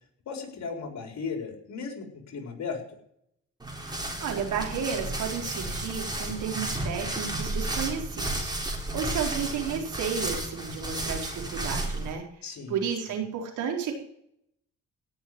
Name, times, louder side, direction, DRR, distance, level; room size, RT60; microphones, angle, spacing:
voice 1, 0.3-2.8 12.4-13.2, left 5 dB, 65° left, 3 dB, 4.5 m, -36 dB
sound 1, 3.6-12.1, right 1 dB, 15° right, 3.7 m, -33 dB
voice 2, 3.9-12.2 12.7-13.9, right 7 dB, 85° right, 1 dB, 4.3 m, -32 dB
17.5 x 6.6 x 9.7 m, 0.71 s
cardioid pair, 90°, 30 cm